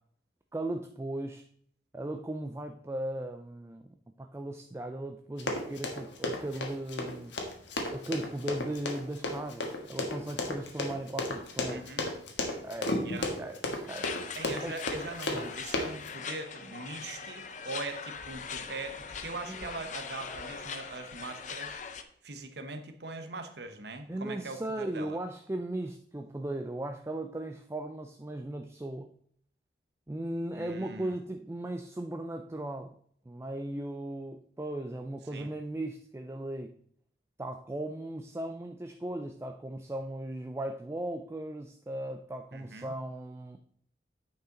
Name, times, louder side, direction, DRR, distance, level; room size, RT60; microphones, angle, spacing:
voice 1, 0.5-1.4 1.9-3.8 4.2-7.3 7.9-11.8 12.6-14.7 15.3-15.5 19.5-19.6 24.1-29.1 30.1-33.0 33.3-36.7 37.4-43.6, right 1 dB, 15° right, 6 dB, 0.4 m, -37 dB
Run, 5.4-16.1, left 2 dB, 85° left, 1.5 m, -33 dB
voice 2, 11.7-12.1 13.0-13.3 14.3-21.8 22.2-25.2 30.5-31.2 35.3-35.5 42.5-42.9, right 3 dB, 65° right, 7 dB, 1.0 m, -41 dB
sound 1, 13.9-22.0, left 6 dB, 45° left, 0.6 m, -41 dB
9.2 x 5.6 x 3.8 m, 0.64 s
head